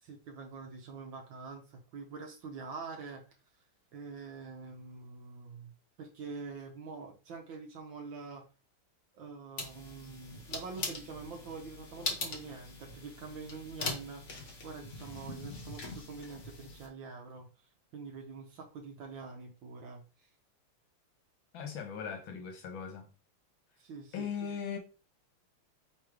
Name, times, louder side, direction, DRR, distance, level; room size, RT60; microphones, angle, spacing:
voice 1, 0.0-3.2 3.9-5.7 6.0-8.5 9.1-17.5 17.9-20.3 23.8-24.3, right 4 dB, 70° right, 1.4 m, -45 dB
sound 1, 9.6-16.9, left 3 dB, 50° left, 0.9 m, -41 dB
voice 2, 21.5-23.1 24.1-24.8, left 7 dB, 70° left, 1.4 m, -39 dB
3.6 x 3.0 x 4.8 m
omnidirectional pair, 2.4 m